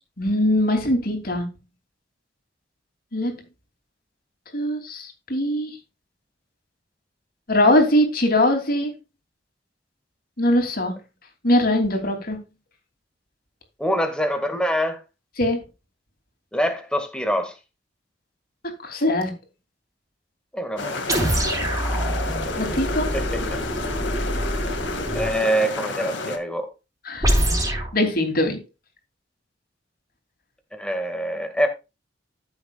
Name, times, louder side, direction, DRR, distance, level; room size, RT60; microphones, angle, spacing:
voice 1, 0.2-1.5 3.1-3.4 4.5-5.8 7.5-8.9 10.4-11.0 11.4-12.4 15.4-15.6 18.6-19.3 22.6-23.1 27.1-27.4 27.9-28.6, left 1 dB, 55° left, 3.0 m, -21 dB
voice 2, 13.8-15.0 16.5-17.6 20.5-21.3 23.1-23.6 25.1-26.7 30.7-31.7, equal, 5° left, 2.0 m, -25 dB
sound 1, 20.8-26.4, left 3 dB, 85° left, 2.2 m, -31 dB
sound 2, 21.1-25.4 27.2-27.9, right 1 dB, 20° right, 4.5 m, -25 dB
14.5 x 7.1 x 2.4 m
head